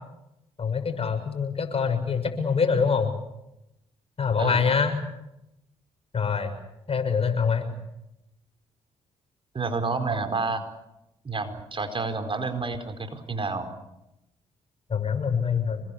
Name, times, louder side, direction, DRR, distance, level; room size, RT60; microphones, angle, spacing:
voice 1, 0.6-3.1 4.2-4.9 6.1-6.5 6.9-7.7 14.9-15.8, left 6 dB, 45° left, 7 dB, 6.4 m, -25 dB
voice 2, 9.5-10.6 11.2-13.7, right 3 dB, 35° right, 7 dB, 4.6 m, -29 dB
27.5 x 21.0 x 8.6 m, 0.87 s
supercardioid pair, 50°, 14 cm